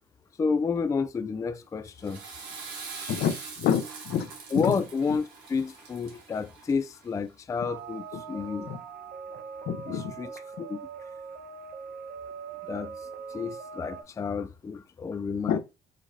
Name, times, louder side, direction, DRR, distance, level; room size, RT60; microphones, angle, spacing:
voice 1, 0.4-2.2 4.5-8.7 9.8-10.8 12.7-15.6, left 5 dB, 20° left, 0.3 m, -30 dB
Water / Toilet flush, 1.8-7.1, right 4 dB, 80° right, 1.8 m, -43 dB
voice 2, 3.1-4.3 4.6-4.7 8.7-8.8 9.7-10.1 15.5-15.6, left 9 dB, 70° left, 0.7 m, -27 dB
sound 1, 7.6-14.0, right 6 dB, 55° right, 1.0 m, -41 dB
5.1 x 2.6 x 4.0 m
cardioid pair, 110°, 17 cm